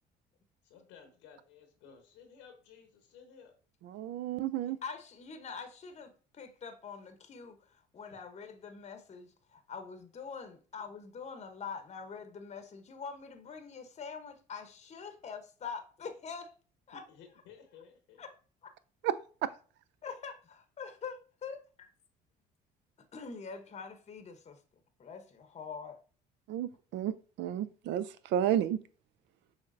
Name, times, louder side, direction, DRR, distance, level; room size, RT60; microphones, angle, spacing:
voice 1, 0.6-3.5 16.9-18.2, left 6 dB, 90° left, 1.0 m, -56 dB
voice 2, 3.8-4.8 19.0-19.5 26.5-28.8, right 10 dB, 70° right, 0.4 m, -32 dB
voice 3, 4.8-16.5 16.9-17.0 18.2-18.3 18.6-18.7 20.0-21.6 23.1-24.6 25.0-26.0, left 5 dB, 35° left, 0.8 m, -44 dB
6.3 x 3.3 x 2.5 m
supercardioid pair, 80°, 20 cm